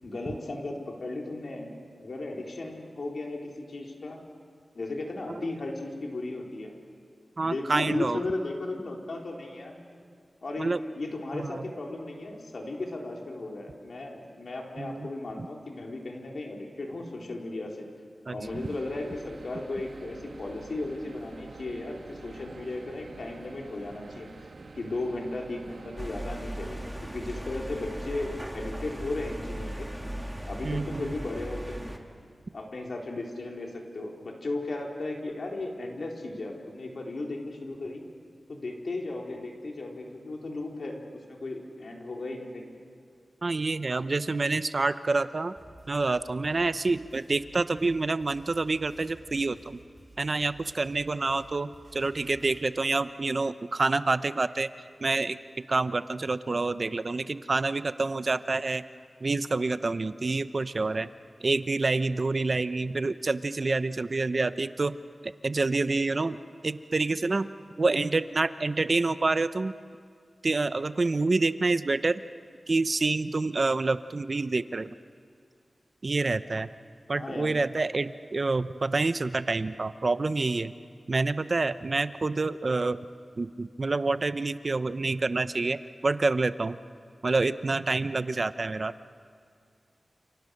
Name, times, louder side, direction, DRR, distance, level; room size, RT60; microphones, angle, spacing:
voice 1, 0.0-4.2 4.7-6.7 7.4-9.8 10.4-17.9 18.3-24.5 24.7-29.9 30.5-31.9 32.5-38.0 38.5-41.0 41.3-42.8 77.1-77.6, left 2 dB, 70° left, 0 dB, 4.2 m, -36 dB
voice 2, 7.4-8.2 10.6-10.8 11.3-11.6 14.8-15.1 15.4-15.5 18.3-18.4 30.6-31.1 43.4-45.5 45.9-49.8 50.2-54.7 55.0-55.4 55.7-58.8 59.2-61.1 61.4-65.0 65.2-66.4 66.6-67.5 67.8-69.7 70.4-72.2 72.7-75.0 76.0-76.7 77.1-80.7 81.1-83.0 83.4-86.8 87.2-88.9, right 3 dB, 50° right, 12 dB, 0.8 m, -27 dB
sound 1, 18.4-26.1, right 4 dB, 80° right, 1.7 m, -47 dB
sound 2, 26.0-32.0, right 1 dB, 5° right, 2.5 m, -37 dB
sound 3, 45.6-52.6, right 2 dB, 30° right, 6.7 m, -54 dB
29.5 x 29.5 x 6.6 m, 2.2 s
wide cardioid pair, 80°, 0 cm